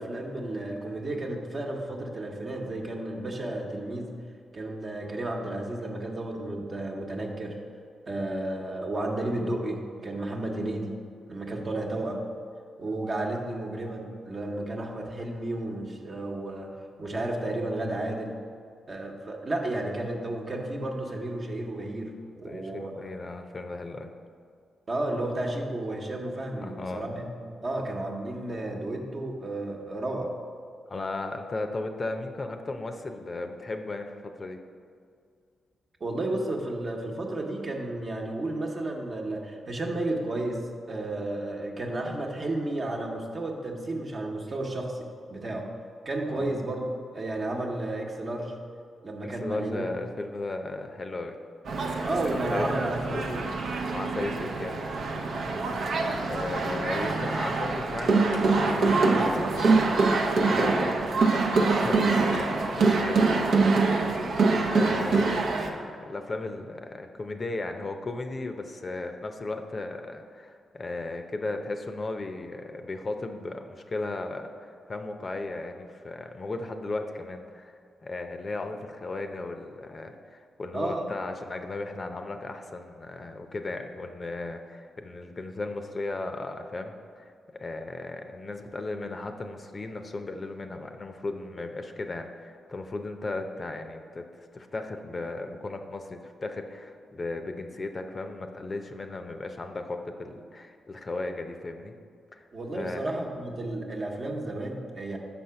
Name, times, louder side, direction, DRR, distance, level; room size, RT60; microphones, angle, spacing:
voice 1, 0.0-4.1 4.5-7.6 8.1-11.0 11.3-12.2 12.8-16.7 17.0-18.4 18.9-23.0 24.9-30.3 36.0-45.7 46.0-48.6 49.0-49.9 52.0-53.5 80.7-81.1 102.5-105.2, right 1 dB, 45° right, 1 dB, 1.0 m, -32 dB
voice 2, 22.4-24.1 26.6-27.0 30.9-34.6 46.3-46.5 49.2-51.4 52.5-53.3 53.9-54.9 56.2-61.0 61.6-63.8 64.7-101.9 102.3-102.4 102.7-103.2, left 2 dB, 40° left, 6 dB, 0.6 m, -36 dB
sound 1, 51.6-65.7, right 3 dB, 70° right, 0.6 m, -25 dB
Slam, 58.3-61.5 62.0-62.6 63.0-64.2 65.0-65.4, left 1 dB, 90° left, 0.7 m, -45 dB
5.9 x 4.3 x 5.7 m, 2.2 s
supercardioid pair, 50°, 0 cm